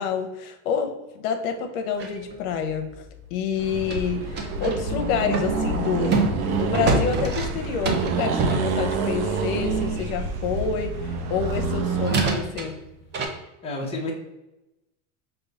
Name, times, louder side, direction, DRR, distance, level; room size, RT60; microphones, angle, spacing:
voice 1, 0.0-2.9 3.3-12.8, left 6 dB, 75° left, 5 dB, 0.8 m, -28 dB
sound 1, 2.0-4.8 5.3-9.7 11.4-11.5 12.0-13.3, right 3 dB, 25° right, 0.5 m, -28 dB
Accelerating revving vroom, 3.6-12.3, right 4 dB, 90° right, 0.8 m, -27 dB
voice 2, 13.3-14.1, left 2 dB, 15° left, -2 dB, 0.8 m, -31 dB
5.1 x 2.3 x 4.0 m, 0.97 s
supercardioid pair, 140°, 42 cm